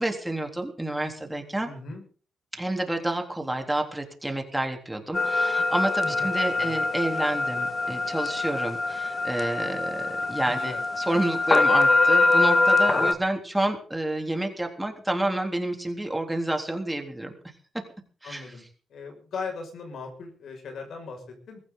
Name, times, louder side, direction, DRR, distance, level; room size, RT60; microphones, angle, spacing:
voice 1, 0.0-1.7 2.6-17.3 18.2-18.5, right 1 dB, 10° right, 3 dB, 3.6 m, -29 dB
voice 2, 1.7-2.0 6.0-6.3 6.5-6.8 10.4-10.8 18.2-18.6 18.9-21.6, left 4 dB, 70° left, 4 dB, 6.1 m, -38 dB
sound 1, 5.1-13.1, left 3 dB, 35° left, 1.9 m, -24 dB
23.0 x 15.0 x 4.0 m, 0.40 s
cardioid pair, 95°, 0 cm